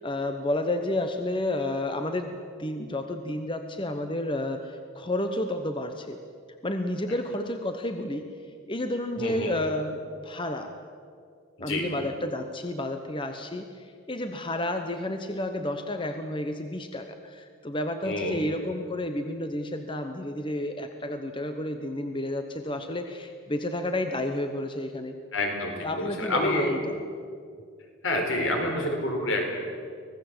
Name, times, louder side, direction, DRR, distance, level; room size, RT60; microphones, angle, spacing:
voice 1, 0.0-6.2 6.6-8.3 8.7-10.7 11.6-25.1 25.8-27.0, left 1 dB, 20° left, 6 dB, 1.0 m, -31 dB
voice 2, 9.2-9.5 11.6-11.9 18.0-18.4 25.3-26.7 28.0-29.5, left 1 dB, 60° left, 2 dB, 4.7 m, -28 dB
25.0 x 18.5 x 7.9 m, 2.2 s
head